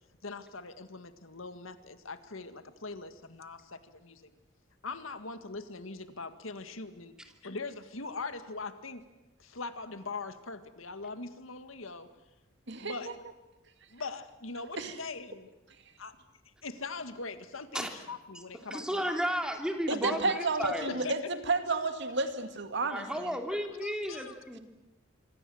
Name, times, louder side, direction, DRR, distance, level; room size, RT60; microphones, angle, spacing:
voice 1, 0.2-4.3 4.8-7.1 7.4-9.0 9.4-12.1 12.8-13.1 13.9-15.5 16.0-16.1 16.6-19.2 19.9-20.0 20.9-21.1 23.5-24.3, left 3 dB, 80° left, 10 dB, 1.9 m, -41 dB
voice 2, 18.7-20.8 22.9-24.6, equal, 5° right, 4 dB, 2.9 m, -33 dB
voice 3, 19.9-23.3, right 3 dB, 60° right, 8 dB, 2.3 m, -31 dB
26.0 x 25.5 x 7.9 m, 0.95 s
head